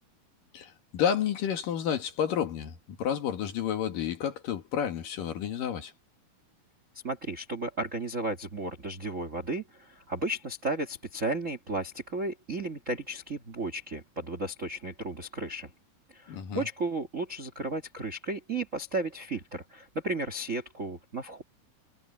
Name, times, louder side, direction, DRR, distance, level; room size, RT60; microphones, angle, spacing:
voice 1, 0.5-5.9 16.3-16.7, left 8 dB, 60° left, 3.2 m, -30 dB
voice 2, 7.0-15.7 16.1-21.4, right 2 dB, 50° right, 0.9 m, -34 dB
omnidirectional pair, 4.6 m